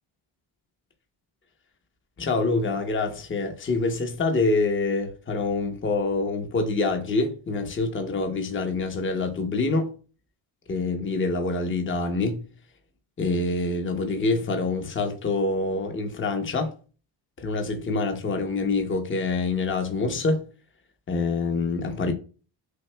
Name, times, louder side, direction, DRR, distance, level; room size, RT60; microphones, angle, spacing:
voice 1, 2.2-9.9 10.7-12.4 13.2-16.7 17.4-20.4 21.1-22.1, left 3 dB, 25° left, 0.8 m, -26 dB
6.2 x 2.6 x 2.2 m
cardioid pair, 80°, 48 cm